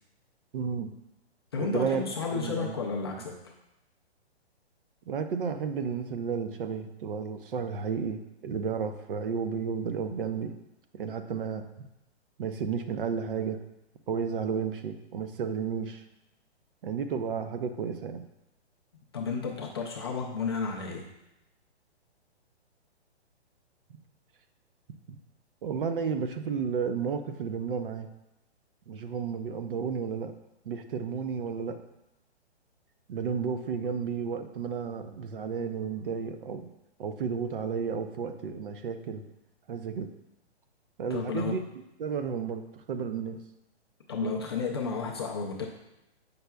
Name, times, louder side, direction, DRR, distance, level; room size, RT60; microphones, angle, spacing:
voice 1, 0.5-0.9 1.6-2.0 2.3-2.8 5.1-10.5 10.9-11.9 12.4-13.6 14.1-16.0 16.8-18.3 25.1-25.2 25.6-28.1 28.9-30.3 30.6-31.8 33.1-36.7 37.0-39.2 39.7-40.1 41.0-41.6 42.0-43.4 44.2-44.4, right 6 dB, 55° right, 8 dB, 0.6 m, -32 dB
voice 2, 1.5-3.5 19.1-21.0 41.1-41.6 44.1-45.7, left 5 dB, 25° left, -2 dB, 0.4 m, -32 dB
8.1 x 5.5 x 2.3 m, 0.91 s
hypercardioid pair, 155°, 33 cm